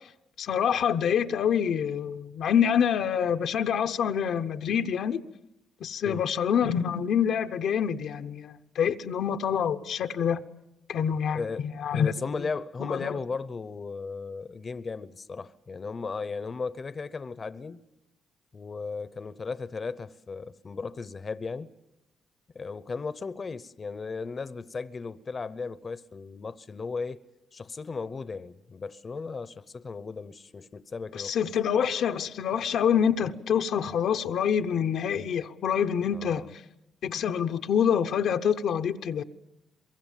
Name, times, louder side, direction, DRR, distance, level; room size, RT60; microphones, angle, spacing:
voice 1, 0.4-5.2 5.8-10.5 10.9-11.4 11.8-12.1 12.8-13.2 31.1-36.6 37.0-39.2, left 8 dB, 70° left, 0.8 m, -26 dB
voice 2, 11.3-11.6 11.9-17.8 18.5-21.7 22.5-27.2 27.5-31.5 36.1-36.5, left 4 dB, 35° left, 0.8 m, -36 dB
24.0 x 22.5 x 7.4 m
cardioid pair, 90°, 0 cm